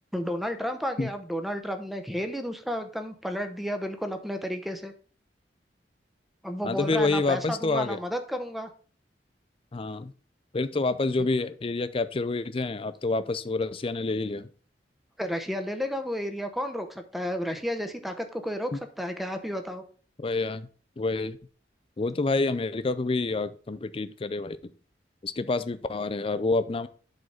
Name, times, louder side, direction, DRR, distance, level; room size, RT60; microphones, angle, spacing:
voice 1, 0.1-4.9 6.4-8.7 15.2-19.8, equal, ahead, 7 dB, 0.8 m, -32 dB
voice 2, 6.6-8.0 9.7-10.1 10.5-14.5 18.7-18.8 20.2-20.7 21.0-21.4 22.0-24.7 25.2-26.9, left 3 dB, 30° left, 13 dB, 0.5 m, -28 dB
7.8 x 4.0 x 5.6 m, 0.42 s
head